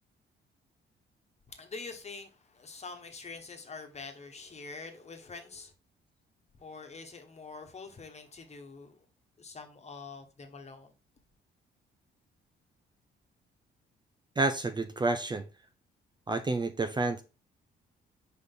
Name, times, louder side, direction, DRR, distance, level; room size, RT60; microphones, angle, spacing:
voice 1, 1.5-5.7 6.6-9.0 9.4-10.9, left 4 dB, 35° left, 1.5 m, -45 dB
voice 2, 14.4-15.4 16.3-17.2, right 3 dB, 20° right, 0.6 m, -29 dB
5.1 x 5.0 x 4.0 m
cardioid pair, 90°, 20 cm